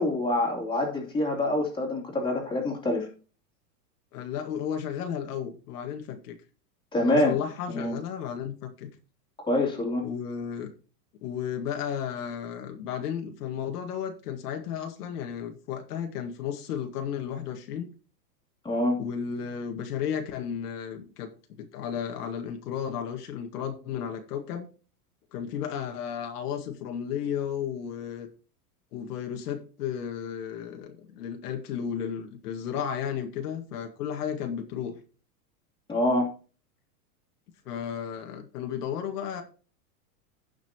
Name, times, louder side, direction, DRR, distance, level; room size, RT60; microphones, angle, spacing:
voice 1, 0.0-3.1 6.9-7.4 7.7-8.0 9.4-10.0 18.6-19.0 35.9-36.3, left 1 dB, 10° left, 2.9 m, -26 dB
voice 2, 4.1-6.4 7.0-8.9 10.0-10.7 11.2-17.9 19.0-21.3 21.6-24.7 25.3-28.3 28.9-34.9 37.7-39.4, left 8 dB, 70° left, 2.1 m, -33 dB
16.0 x 6.0 x 2.9 m
supercardioid pair, 155°, 48 cm